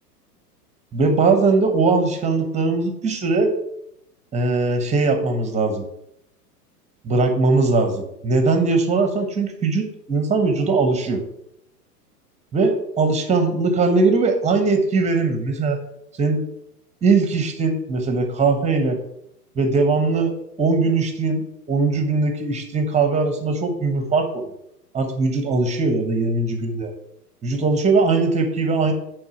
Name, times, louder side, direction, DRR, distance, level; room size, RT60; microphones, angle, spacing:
voice 1, 0.9-3.5 4.3-5.8 7.0-11.2 12.5-15.8 16.2-16.5 17.0-19.0 19.6-20.3 20.6-24.4 24.9-26.9 27.4-28.9, right 3 dB, 15° right, 6 dB, 1.2 m, -20 dB
8.6 x 3.7 x 6.1 m, 0.75 s
figure-of-eight pair, 95°, 47 cm